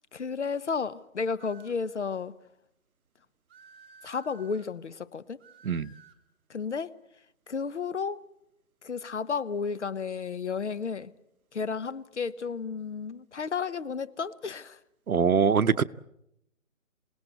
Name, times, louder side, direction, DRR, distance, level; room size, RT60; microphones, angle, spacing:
voice 1, 0.1-2.4 4.0-5.4 6.5-7.0 7.5-8.3 8.8-11.1 11.5-14.8, left 5 dB, 55° left, 0.9 m, -32 dB
sound 1, 1.4-1.9 3.5-4.7 5.4-6.2, right 5 dB, 45° right, 3.4 m, -55 dB
voice 2, 15.1-15.8, right 6 dB, 90° right, 0.9 m, -23 dB
27.0 x 18.5 x 8.0 m
hypercardioid pair, 170°, 42 cm